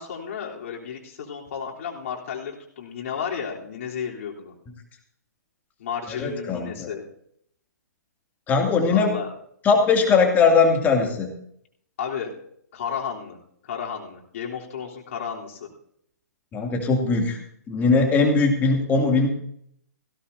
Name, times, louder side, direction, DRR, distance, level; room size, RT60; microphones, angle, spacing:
voice 1, 0.0-4.5 5.8-7.1 8.9-9.3 12.0-12.3 12.7-13.4 13.6-15.7, left 7 dB, 50° left, -2 dB, 3.4 m, -33 dB
voice 2, 6.2-6.9 8.5-9.1 9.6-11.3 16.5-17.4 17.7-19.3, left 4 dB, 20° left, 2 dB, 2.5 m, -20 dB
17.5 x 16.5 x 2.7 m, 0.68 s
hypercardioid pair, 135°, 9 cm